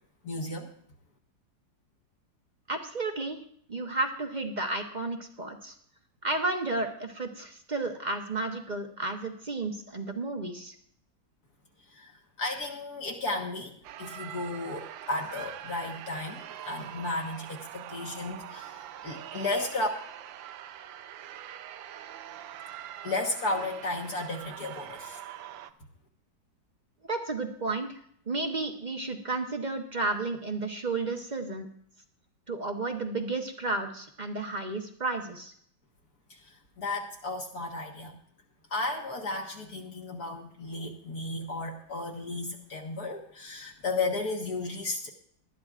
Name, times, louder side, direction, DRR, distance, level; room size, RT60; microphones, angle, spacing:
voice 1, 0.2-0.7 11.9-13.7 14.0-19.9 23.0-25.2 36.3-38.2 38.7-45.1, left 2 dB, 55° left, 1 dB, 1.7 m, -34 dB
voice 2, 2.7-3.4 3.7-5.7 6.2-10.7 27.1-28.0 28.3-31.7 32.5-35.5, right 3 dB, 35° right, 4 dB, 0.7 m, -32 dB
sound 1, 13.8-25.7, right 11 dB, 85° right, 1.4 m, -44 dB
19.5 x 12.0 x 2.5 m, 0.63 s
omnidirectional pair, 2.0 m